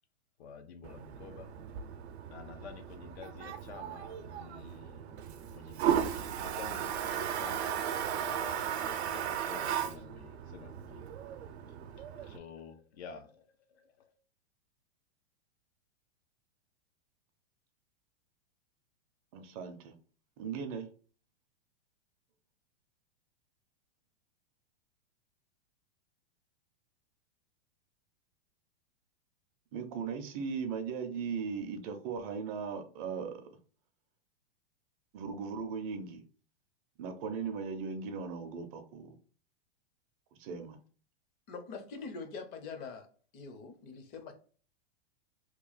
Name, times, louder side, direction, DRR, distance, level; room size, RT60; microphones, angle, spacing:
voice 1, 0.4-1.6 2.3-7.8 8.1-11.1 12.0-14.1, left 6 dB, 80° left, 0.8 m, -50 dB
Toilet flush, 0.8-12.4, right 9 dB, 75° right, 0.6 m, -36 dB
voice 2, 19.3-20.0 20.4-20.9 29.7-33.5 35.1-36.2 37.0-39.2 40.4-40.8, right 5 dB, 35° right, 0.5 m, -38 dB
voice 3, 41.5-43.1 43.3-44.3, left 4 dB, 30° left, 0.6 m, -43 dB
3.0 x 2.3 x 3.9 m
supercardioid pair, 145°, 32 cm